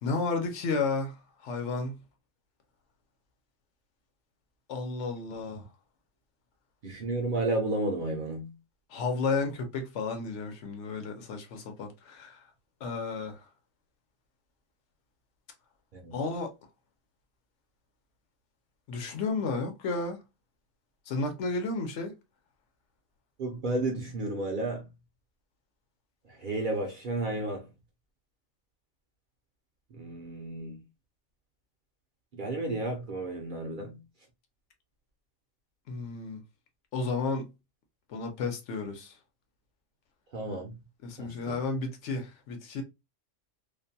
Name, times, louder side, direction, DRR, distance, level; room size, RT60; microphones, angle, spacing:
voice 1, 0.0-1.2 1.4-2.0 4.7-5.6 8.9-12.4 12.8-13.4 16.1-16.5 18.9-20.2 21.1-22.1 35.9-36.4 36.9-37.5 38.1-39.1 41.0-42.8, left 3 dB, 70° left, 1.0 m, -32 dB
voice 2, 6.8-8.5 15.9-16.2 23.4-24.9 26.4-27.6 30.0-30.8 32.4-34.0 40.3-40.8 41.2-41.5, right 2 dB, 60° right, 0.5 m, -32 dB
2.5 x 2.2 x 2.6 m
omnidirectional pair, 1.3 m